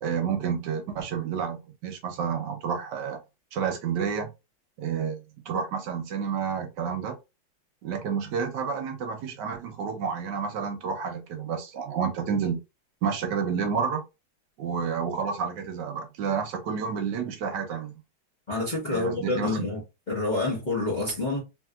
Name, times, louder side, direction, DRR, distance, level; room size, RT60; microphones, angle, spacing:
voice 1, 0.0-3.2 3.5-4.3 4.8-7.2 7.8-12.6 13.0-14.0 14.6-18.0 18.9-19.7, right 6 dB, 75° right, 1.2 m, -30 dB
voice 2, 18.5-19.8 20.1-21.4, left 3 dB, 35° left, 0.8 m, -28 dB
3.1 x 2.8 x 2.3 m
omnidirectional pair, 2.0 m